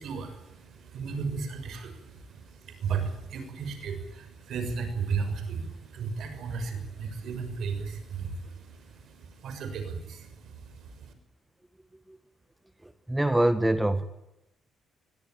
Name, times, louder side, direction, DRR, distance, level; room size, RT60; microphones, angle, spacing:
voice 1, 0.0-11.1, right 5 dB, 70° right, 8 dB, 6.4 m, -35 dB
voice 2, 12.8-14.0, right 1 dB, 10° right, 11 dB, 1.5 m, -25 dB
23.5 x 18.5 x 9.1 m, 0.87 s
cardioid pair, 90°, 0 cm